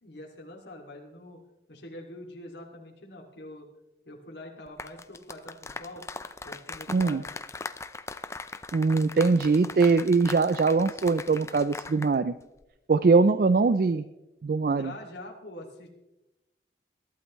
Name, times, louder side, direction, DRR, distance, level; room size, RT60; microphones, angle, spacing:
voice 1, 0.0-1.4 1.7-3.7 4.0-6.0 6.4-7.3 14.8-15.9, left 1 dB, 75° left, -1 dB, 2.4 m, -44 dB
sound 1, 4.7-12.2 12.4-12.6, left 3 dB, 15° left, 0.4 m, -40 dB
voice 2, 6.9-7.2 8.7-12.3 12.9-14.0 14.4-14.9, right 4 dB, 50° right, 13 dB, 0.4 m, -22 dB
22.0 x 12.0 x 3.1 m, 0.98 s
head